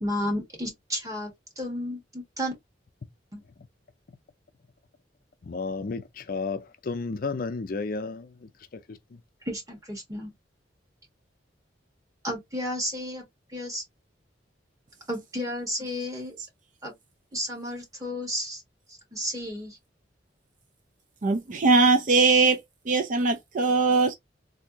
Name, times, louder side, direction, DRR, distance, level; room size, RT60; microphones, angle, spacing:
voice 1, 0.0-2.5 3.3-3.4 9.4-10.3 12.2-13.2 13.5-13.8 15.1-16.3 16.8-16.9 17.3-18.6 19.1-19.8, equal, 20° right, 1.5 m, -32 dB
voice 2, 5.5-6.0 6.3-6.6 6.9-8.2, left 4 dB, 50° left, 0.5 m, -31 dB
voice 3, 21.2-22.6 22.9-24.1, right 3 dB, 45° right, 0.4 m, -21 dB
3.4 x 2.7 x 2.8 m
head